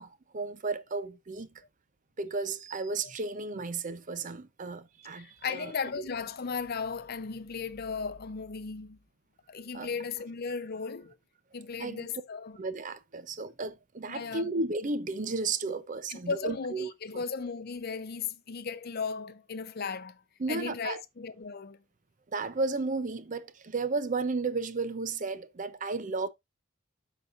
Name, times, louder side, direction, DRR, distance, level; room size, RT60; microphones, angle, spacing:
voice 1, 0.0-1.5 2.2-5.7 9.7-9.9 11.8-12.0 12.6-16.9 20.4-21.0 22.3-26.3, right 3 dB, 40° right, 0.6 m, -33 dB
voice 2, 5.1-9.0 9.5-11.2 11.5-12.6 14.1-14.5 16.1-20.2 20.5-21.8, left 5 dB, 50° left, 0.6 m, -36 dB
12.0 x 4.1 x 2.5 m
head